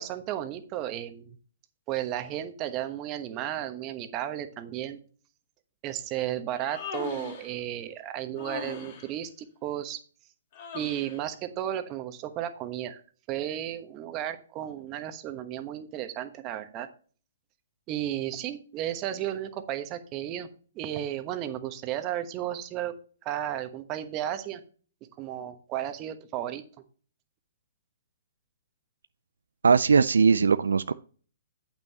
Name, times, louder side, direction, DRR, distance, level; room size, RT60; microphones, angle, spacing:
voice 1, 0.0-1.4 1.9-5.0 5.8-10.0 10.7-13.0 13.3-16.9 17.9-20.5 20.7-22.9 23.2-24.6 25.2-26.6, right 11 dB, 30° right, 9 dB, 1.1 m, -33 dB
Human voice, 6.5-7.5 8.4-9.1 10.5-11.2, left 5 dB, 45° left, 2.5 m, -39 dB
voice 2, 29.6-30.9, right 5 dB, 75° right, 14 dB, 0.4 m, -20 dB
8.9 x 8.7 x 2.9 m, 0.41 s
figure-of-eight pair, 125°, 0 cm